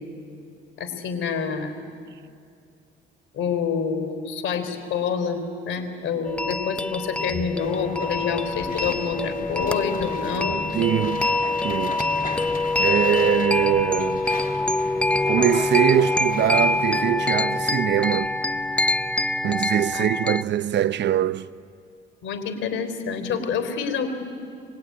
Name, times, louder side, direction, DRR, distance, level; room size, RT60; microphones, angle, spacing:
voice 1, 0.8-1.8 3.3-10.6 19.9-20.3 22.2-24.1, left 6 dB, 80° left, 3.9 m, -27 dB
shanti-windchimes, 6.2-20.4, left 2 dB, 5° left, 0.5 m, -25 dB
sound 1, 7.6-18.3, left 4 dB, 45° left, 2.4 m, -37 dB
voice 2, 10.7-11.3 11.6-12.0 12.8-14.3 15.3-18.3 19.4-21.5, right 11 dB, 60° right, 0.7 m, -22 dB
24.5 x 21.0 x 9.6 m
cardioid pair, 90°, 20 cm